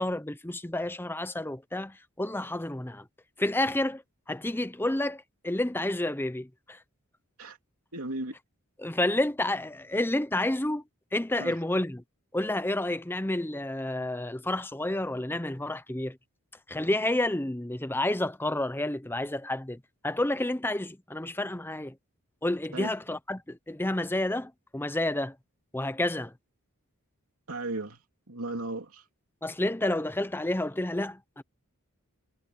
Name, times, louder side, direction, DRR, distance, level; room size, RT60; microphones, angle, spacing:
voice 1, 0.0-3.1 3.4-4.0 4.3-6.8 8.8-10.8 11.1-12.0 12.3-16.2 16.7-22.0 22.4-25.4 25.7-26.3 29.4-31.4, left 1 dB, 10° left, 0.7 m, -30 dB
voice 2, 7.9-8.3 11.4-11.6 22.7-22.9 27.5-28.0 28.3-29.1, right 2 dB, 75° right, 2.9 m, -35 dB
head